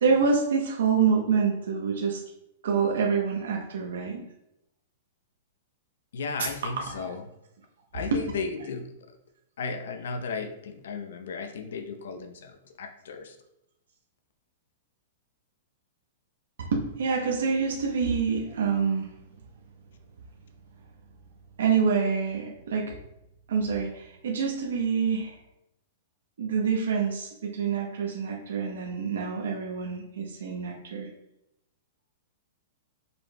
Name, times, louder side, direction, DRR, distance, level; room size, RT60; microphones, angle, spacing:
voice 1, 0.0-2.2 2.6-4.2 6.4-6.5 6.8-7.1 8.1-8.2 8.6-8.7 16.7-19.1 21.6-22.9 23.5-25.4 26.4-31.1, right 5 dB, 85° right, -1 dB, 0.8 m, -26 dB
voice 2, 6.1-7.2 7.9-8.8 9.6-13.3, left 4 dB, 80° left, 6 dB, 0.6 m, -35 dB
5.2 x 4.5 x 2.2 m, 0.84 s
supercardioid pair, 170°, 0 cm